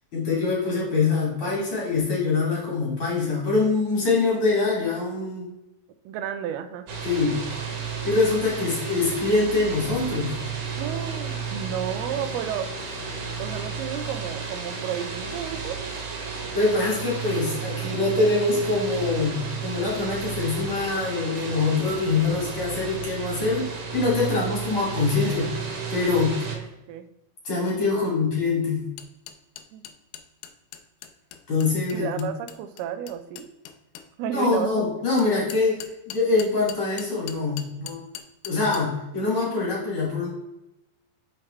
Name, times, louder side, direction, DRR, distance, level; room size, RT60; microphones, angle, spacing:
voice 1, 0.1-5.5 7.0-7.4 8.0-10.4 16.5-25.5 25.9-26.3 27.4-28.9 31.5-32.3 34.3-35.8 36.1-38.0 38.4-40.3, left 3 dB, 35° left, -5 dB, 2.9 m, -24 dB
voice 2, 6.1-6.9 10.8-12.7 13.4-15.8 24.2-24.6 26.3-27.1 27.9-28.0 29.7-29.8 31.9-33.5 34.2-34.7, right 9 dB, 85° right, 10 dB, 2.5 m, -32 dB
sound 1, 6.9-26.6, right 5 dB, 65° right, 2.6 m, -33 dB
sound 2, 29.0-34.1 35.2-38.8, left 10 dB, 85° left, 2.6 m, -41 dB
6.5 x 5.8 x 3.2 m, 0.92 s
omnidirectional pair, 4.5 m